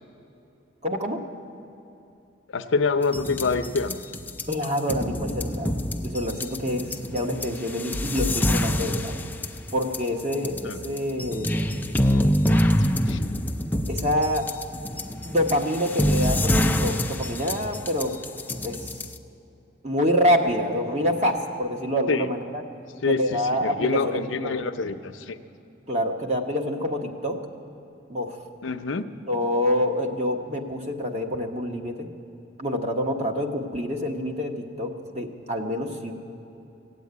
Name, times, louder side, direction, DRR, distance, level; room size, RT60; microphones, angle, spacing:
voice 1, 0.8-1.2 4.5-5.7 6.0-9.2 9.7-11.7 13.9-14.4 15.2-18.1 18.6-18.9 19.8-22.6 23.1-24.6 25.9-27.4 28.1-28.4 29.3-32.1 32.6-36.1, equal, 35° right, 3 dB, 1.2 m, -26 dB
voice 2, 2.5-4.0 10.6-10.8 12.8-13.2 22.1-22.3 23.0-25.4 28.6-29.0, left 4 dB, 80° left, 8 dB, 0.7 m, -26 dB
sound 1, 3.0-19.2, left 1 dB, 10° left, 0.4 m, -26 dB
16.5 x 8.3 x 9.4 m, 2.8 s
head